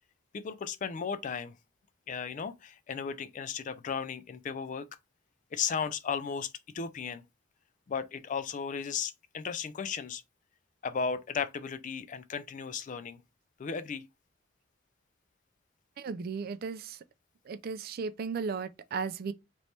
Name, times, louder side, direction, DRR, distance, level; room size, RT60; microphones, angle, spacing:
voice 1, 0.3-1.5 2.1-4.9 5.5-7.2 7.9-10.2 10.8-13.2 13.6-14.1, left 6 dB, 40° left, 0.3 m, -35 dB
voice 2, 16.0-17.0 17.5-19.3, right 5 dB, 50° right, 0.4 m, -35 dB
3.2 x 3.0 x 4.1 m
head